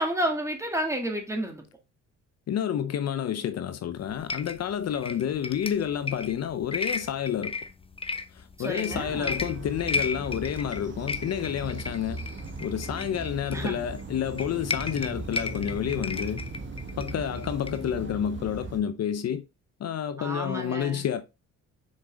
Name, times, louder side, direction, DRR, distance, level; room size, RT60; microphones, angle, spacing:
voice 1, 0.0-1.6 8.6-9.4 13.5-13.8 20.2-21.1, right 1 dB, 10° right, 2.3 m, -30 dB
voice 2, 2.5-7.5 8.3-12.2 12.6-16.4 17.0-19.4 19.8-21.2, left 9 dB, 55° left, 0.7 m, -29 dB
sound 1, 4.0-18.0, left 3 dB, 20° left, 0.7 m, -35 dB
sound 2, 8.9-18.8, right 3 dB, 40° right, 1.6 m, -38 dB
6.5 x 4.6 x 3.8 m
cardioid pair, 90°, 30 cm